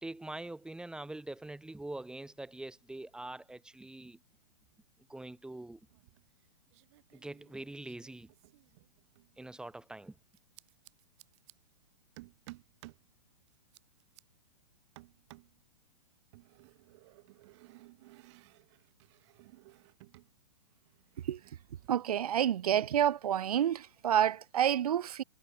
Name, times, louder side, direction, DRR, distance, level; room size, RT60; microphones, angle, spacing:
voice 1, 0.0-4.2 5.1-5.8 7.1-8.3 9.4-10.2, right 2 dB, 5° right, 2.9 m, -44 dB
sound 1, 5.9-6.4 6.7-9.3 10.3-11.5 12.2-13.1 13.5-14.2 14.9-15.6 16.3-20.3 20.6-21.9, right 21 dB, 45° right, 5.2 m, -57 dB
voice 2, 21.9-25.2, right 10 dB, 65° right, 0.9 m, -28 dB
hypercardioid pair, 120°, 20 cm